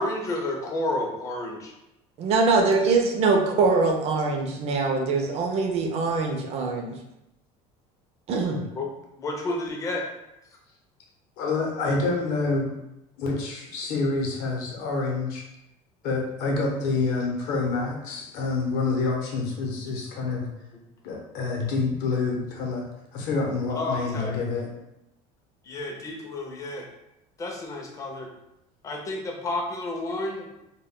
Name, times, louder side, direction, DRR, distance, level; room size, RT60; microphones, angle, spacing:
voice 1, 0.0-1.7 8.7-8.9 9.2-10.1 23.8-24.4 25.6-26.9 27.4-28.3 28.8-30.5, left 2 dB, 20° left, 0 dB, 0.4 m, -30 dB
voice 2, 2.2-7.0 8.3-8.6, right 4 dB, 40° right, 2 dB, 0.4 m, -23 dB
voice 3, 11.4-12.8 13.2-15.4 16.0-20.5 21.0-22.8 23.1-24.7, left 3 dB, 65° left, 0 dB, 0.7 m, -27 dB
2.2 x 2.1 x 3.5 m, 0.88 s
cardioid pair, 155°, 16 cm